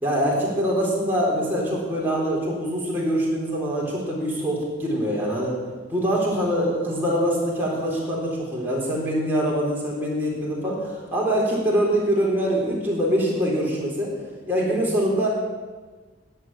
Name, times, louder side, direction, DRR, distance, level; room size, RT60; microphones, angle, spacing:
voice 1, 0.0-5.6 5.9-14.1 14.5-15.3, equal, 10° right, -4 dB, 3.8 m, -24 dB
11.0 x 8.1 x 9.6 m, 1.4 s
head